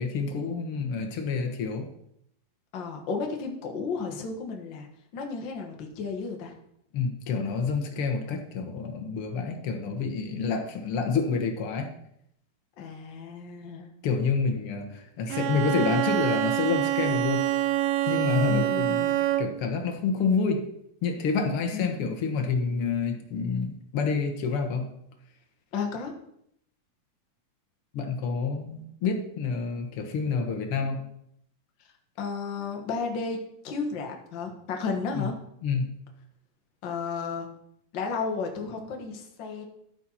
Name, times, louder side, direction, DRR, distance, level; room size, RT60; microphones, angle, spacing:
voice 1, 0.0-1.9 6.9-11.9 14.0-17.5 18.1-19.0 19.4-20.6 21.0-24.9 27.9-31.1 35.1-35.3 35.6-35.9, left 5 dB, 65° left, 4 dB, 1.3 m, -28 dB
voice 2, 2.7-4.9 5.1-6.6 12.8-13.9 18.5-19.2 21.7-22.1 25.7-26.1 32.2-33.4 33.6-35.4 36.8-37.5 37.9-39.6, left 5 dB, 50° left, 2 dB, 1.4 m, -33 dB
Bowed string instrument, 15.3-19.7, right 13 dB, 80° right, 2.3 m, -26 dB
13.5 x 4.6 x 5.7 m, 0.74 s
omnidirectional pair, 4.3 m